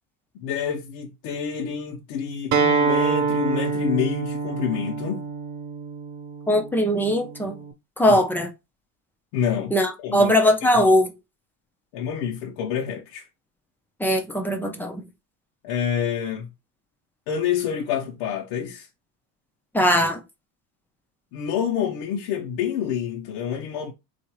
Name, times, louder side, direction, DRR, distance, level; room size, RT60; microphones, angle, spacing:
voice 1, 0.4-5.2 8.1-8.2 9.3-9.8 10.0-10.3 10.7-10.8 11.9-13.3 15.6-16.5 17.3-18.9 21.3-23.9, left 8 dB, 70° left, 0.9 m, -27 dB
Acoustic guitar, 2.5-7.7, right 5 dB, 45° right, 0.9 m, -26 dB
voice 2, 6.5-7.6 8.0-8.5 9.7-11.1 14.0-15.0 19.7-20.2, equal, 5° left, 0.3 m, -20 dB
3.9 x 2.6 x 4.6 m
cardioid pair, 165°, 41 cm